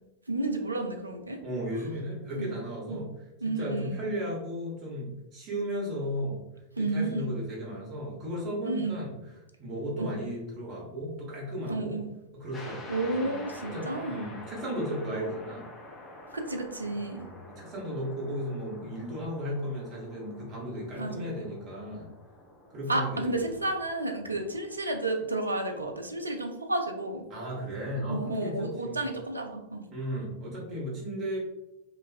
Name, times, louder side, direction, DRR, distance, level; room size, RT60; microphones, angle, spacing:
voice 1, 0.3-1.4 2.4-2.5 2.9-3.0 3.4-4.1 6.8-7.3 8.6-9.0 10.0-10.1 11.7-12.1 12.9-14.3 16.3-17.3 21.0-21.3 22.9-27.2 28.1-29.8, right 2 dB, 80° right, 4 dB, 0.4 m, -31 dB
voice 2, 1.4-3.1 3.4-6.4 6.8-9.1 9.6-12.0 12.3-15.6 17.1-22.1 22.7-23.3 27.3-29.0 29.9-31.4, equal, 35° right, -3 dB, 1.1 m, -35 dB
sound 1, 12.5-25.1, left 1 dB, 25° left, 0.6 m, -48 dB
3.0 x 2.3 x 2.4 m, 0.94 s
figure-of-eight pair, 90°, 0 cm